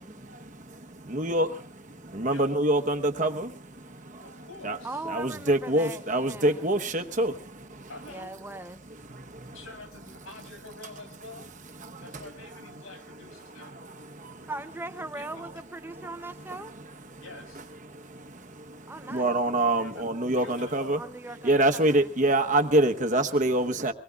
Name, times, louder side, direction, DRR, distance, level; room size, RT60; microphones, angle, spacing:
voice 1, 0.0-0.3 4.8-6.6 8.1-8.8 14.5-16.7 18.9-19.3 21.0-22.0, right 2 dB, 10° right, 0.6 m, -39 dB
voice 2, 0.9-4.8 5.0-7.9 8.8-9.6 11.8-12.8 13.4-14.5 15.4-15.5 15.9-17.2 17.8-21.0 21.4-23.9, right 1 dB, 35° right, 1.0 m, -27 dB
voice 3, 4.2-5.1 7.9-8.3 9.5-11.5 12.0-13.7 15.2-15.5 17.2-17.7 19.7-21.0 21.4-21.6, left 2 dB, 75° left, 6.1 m, -47 dB
24.5 x 20.0 x 2.4 m
head